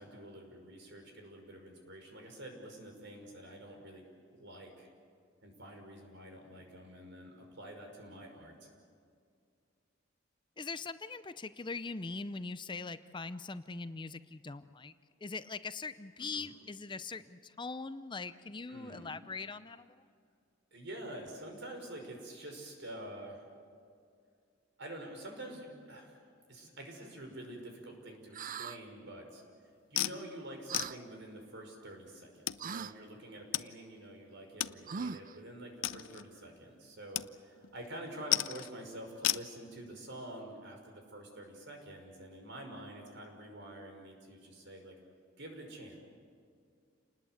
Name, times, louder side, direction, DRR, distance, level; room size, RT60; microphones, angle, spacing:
voice 1, 0.0-4.0 4.4-4.9 5.4-8.7 16.2-16.5 18.7-19.2 20.7-23.5 24.8-26.2 26.5-29.4 29.9-44.9 45.4-46.0, right 1 dB, 65° right, 3 dB, 5.5 m, -47 dB
voice 2, 10.6-14.9 15.2-20.0, left 4 dB, 25° left, 13 dB, 0.6 m, -42 dB
sound 1, 28.3-28.8 30.7-31.0 32.6-32.9 34.9-35.4, right 6 dB, 45° right, 0.5 m, -40 dB
sound 2, 30.0-30.2 30.7-30.9 31.8-31.9 32.5-32.6 33.5-33.7 34.0-34.1 34.6-34.8 35.2-35.3 35.8-36.3 37.2-37.3 37.6-37.9 38.3-38.7 39.2-39.5, left 13 dB, 90° left, 0.6 m, -33 dB
29.0 x 20.0 x 8.0 m, 2.3 s
head